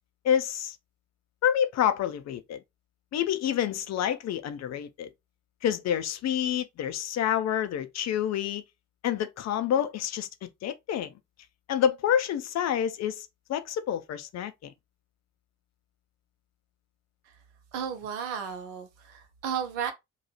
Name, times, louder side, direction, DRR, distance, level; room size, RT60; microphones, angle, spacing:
voice 1, 0.2-0.8 1.4-2.6 3.1-5.1 5.6-8.6 9.0-11.1 11.7-14.7, left 9 dB, 45° left, 0.6 m, -28 dB
voice 2, 17.7-19.9, right 8 dB, 65° right, 0.8 m, -33 dB
2.8 x 2.3 x 4.1 m
figure-of-eight pair, 40°, 39 cm